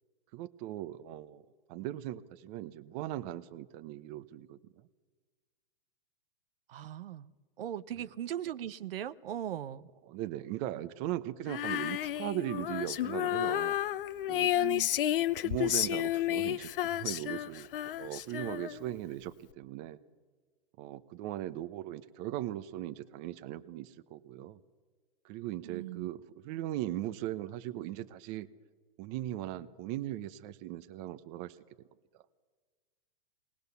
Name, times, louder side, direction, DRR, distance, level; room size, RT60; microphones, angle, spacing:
voice 1, 0.3-1.4 1.7-4.6 10.1-13.7 14.3-14.5 15.4-17.7 18.0-20.0 20.8-24.6 25.2-28.5 29.0-31.6, right 14 dB, 35° right, 13 dB, 0.8 m, -39 dB
voice 2, 6.7-7.3 7.6-9.9 14.5-14.9 25.6-26.1, right 10 dB, 75° right, 14 dB, 0.8 m, -39 dB
Female singing, 11.5-18.9, left 13 dB, 65° left, 0.8 m, -31 dB
21.0 x 19.0 x 6.9 m, 1.4 s
hypercardioid pair, 145°, 29 cm